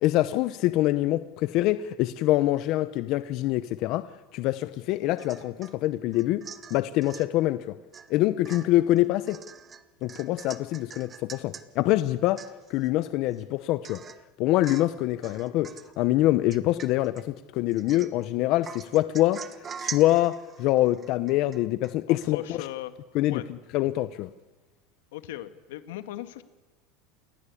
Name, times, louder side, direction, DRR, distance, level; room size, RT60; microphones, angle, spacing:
voice 1, 0.0-4.1 4.3-6.4 6.7-7.7 8.1-9.4 10.0-12.4 12.7-14.0 14.4-15.7 16.0-19.4 19.8-22.6 23.1-24.3, left 16 dB, 50° left, 13 dB, 0.8 m, -25 dB
Domestic sounds home sounds / Chink clink / Drip, 5.2-5.8 6.1-7.3 7.9-8.1 8.4-11.7 12.0-12.1 12.4-12.9 13.3-13.4 13.8-14.3 14.6-15.0 15.2-15.9 16.5-17.2 17.7-18.3 18.6-21.9 22.2-22.3, right 6 dB, 20° right, 1.1 m, -43 dB
voice 2, 22.1-23.0 23.3-23.5 25.1-26.4, left 14 dB, 85° left, 11 dB, 1.9 m, -38 dB
28.5 x 20.0 x 8.5 m, 1.2 s
supercardioid pair, 150°, 0 cm